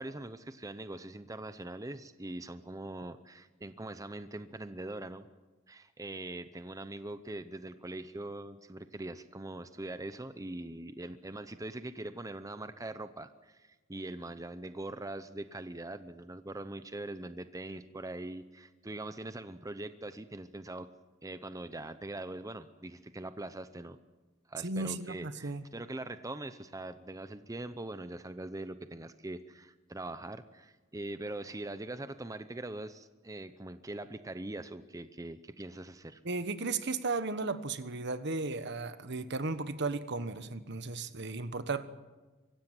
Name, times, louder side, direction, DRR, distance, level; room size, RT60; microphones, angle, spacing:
voice 1, 0.0-5.3 5.7-20.9 21.2-24.0 24.5-36.2, right 2 dB, 15° right, 11 dB, 0.7 m, -42 dB
voice 2, 24.6-25.6 36.2-41.8, right 3 dB, 60° right, 12 dB, 1.3 m, -35 dB
24.5 x 16.0 x 9.1 m, 1.2 s
head